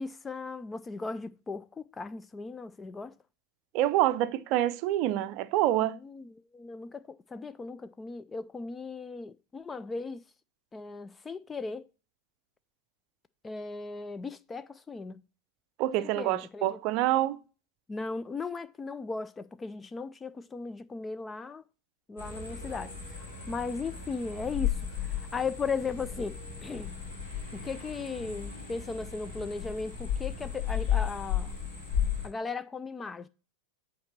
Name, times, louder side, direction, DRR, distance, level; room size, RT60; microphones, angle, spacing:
voice 1, 0.0-3.1 6.0-10.2 10.7-11.9 13.4-15.2 16.0-16.8 17.9-21.7 22.1-23.0 23.5-26.9 27.5-31.6 32.2-33.3, left 4 dB, 15° left, 0.3 m, -37 dB
voice 2, 3.7-6.0 15.8-17.4, right 14 dB, 40° right, 0.5 m, -26 dB
night ambience, 22.2-32.3, left 9 dB, 60° left, 3.3 m, -34 dB
8.4 x 4.2 x 4.3 m
figure-of-eight pair, 90°, 0 cm